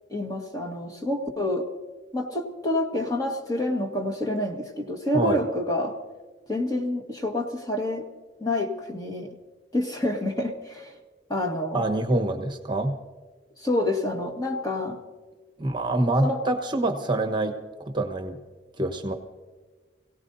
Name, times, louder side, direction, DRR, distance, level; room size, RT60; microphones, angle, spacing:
voice 1, 0.1-1.7 2.1-6.0 6.5-8.1 8.4-9.3 9.7-10.9 11.3-11.8 13.6-15.0 16.2-16.4, left 1 dB, 20° left, 1 dB, 1.6 m, -28 dB
voice 2, 11.7-12.9 15.6-18.4 18.8-19.1, right 2 dB, 25° right, 6 dB, 1.1 m, -26 dB
27.0 x 17.0 x 2.7 m, 1.4 s
head